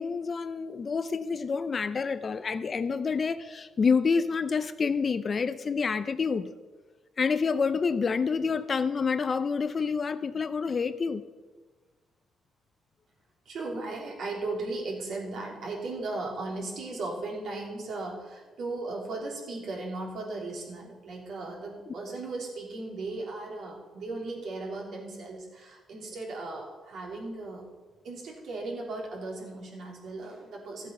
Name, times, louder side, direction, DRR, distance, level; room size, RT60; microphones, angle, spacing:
voice 1, 0.0-6.5 7.2-11.2, left 5 dB, 40° left, 12 dB, 0.6 m, -28 dB
voice 2, 13.4-27.6 28.0-30.9, right 2 dB, 65° right, -1 dB, 3.1 m, -37 dB
13.5 x 7.8 x 5.5 m, 1.3 s
cardioid pair, 90°, 0 cm